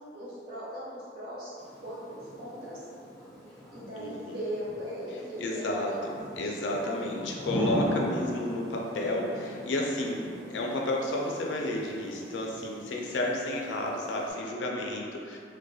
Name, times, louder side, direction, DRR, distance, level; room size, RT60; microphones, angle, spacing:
voice 1, 0.1-1.6 1.8-2.8 3.7-7.1 13.2-13.7, equal, 55° right, -9 dB, 0.8 m, -39 dB
Thunder / Rain, 1.6-14.3, equal, ahead, 0.5 m, -39 dB
voice 2, 4.0-4.4 5.4-15.4, left 1 dB, 85° left, -1 dB, 0.4 m, -32 dB
2.3 x 2.1 x 2.6 m, 2.3 s
head